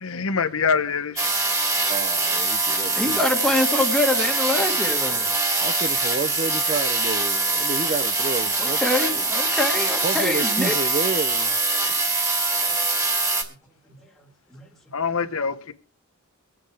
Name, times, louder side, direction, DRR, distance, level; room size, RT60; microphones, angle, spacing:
voice 1, 0.0-1.3 14.9-15.7, left 5 dB, 75° left, 1.1 m, -24 dB
sound 1, 1.2-13.4, right 3 dB, 15° right, 2.3 m, -23 dB
voice 2, 1.9-3.2 5.6-8.8 9.1-9.2 10.0-11.6, right 4 dB, 35° right, 0.5 m, -30 dB
voice 3, 2.9-5.3 8.6-11.0 13.9-14.7, left 1 dB, ahead, 1.6 m, -25 dB
24.0 x 8.1 x 3.3 m
head